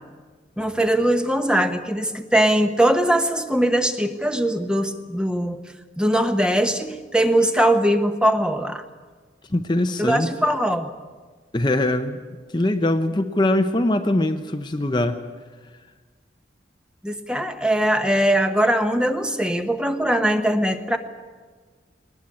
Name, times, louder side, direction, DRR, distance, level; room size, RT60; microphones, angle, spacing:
voice 1, 0.6-5.6 6.0-8.8 10.0-10.9 17.0-21.0, right 1 dB, 5° right, 7 dB, 1.0 m, -21 dB
voice 2, 9.5-10.3 11.5-12.2 12.5-15.2, left 1 dB, 25° left, 7 dB, 0.8 m, -22 dB
20.5 x 19.5 x 8.5 m, 1.5 s
head